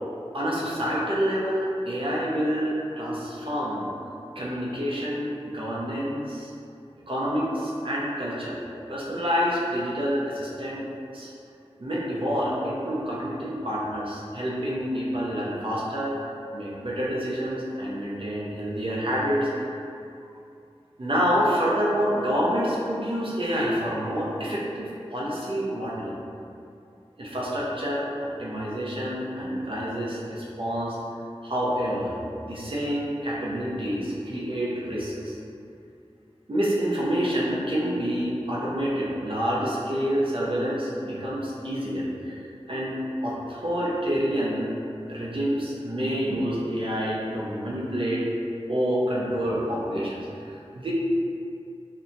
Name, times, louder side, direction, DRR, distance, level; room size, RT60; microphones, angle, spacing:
voice 1, 0.3-3.9 4.4-6.5 7.1-8.6 8.9-10.9 11.1-11.3 11.8-16.2 16.5-19.5 21.0-26.1 27.2-31.0 31.4-32.1 32.4-35.4 36.5-43.0 43.2-44.7 45.1-48.3 48.7-50.9, equal, 55° right, -6 dB, 0.6 m, -28 dB
2.7 x 2.2 x 2.6 m, 2.6 s
wide cardioid pair, 60°, 11 cm